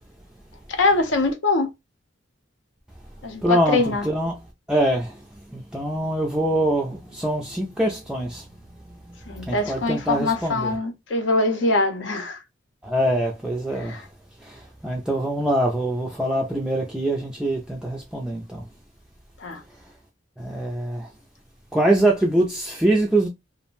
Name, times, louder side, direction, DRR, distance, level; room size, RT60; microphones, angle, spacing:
voice 1, 0.7-1.7 3.2-4.1 9.3-12.4 13.8-14.1 19.4-19.6, left 3 dB, 70° left, 0.6 m, -23 dB
voice 2, 3.4-3.8 4.0-4.3 4.7-5.1 5.5-8.4 9.5-10.7 12.8-14.0 14.5-18.6 20.4-21.1 21.7-23.3, right 1 dB, 5° right, 0.3 m, -23 dB
2.4 x 2.1 x 3.0 m
head